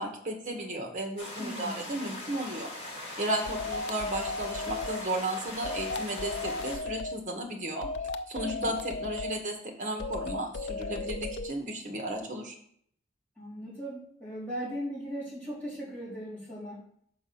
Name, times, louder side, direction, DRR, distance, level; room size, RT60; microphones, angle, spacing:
voice 1, 0.0-2.7 3.2-7.9 8.3-12.6, right 1 dB, 45° right, 2 dB, 1.4 m, -34 dB
sound 1, 1.2-6.8, left 2 dB, 35° left, 2.4 m, -41 dB
voice 2, 1.4-2.0 8.3-8.7 13.4-16.8, equal, 10° left, -9 dB, 3.4 m, -38 dB
sound 2, 3.5-5.0 5.6-7.1 7.8-9.3 10.0-11.5, left 3 dB, 85° left, 0.4 m, -35 dB
6.3 x 4.8 x 5.8 m, 0.65 s
head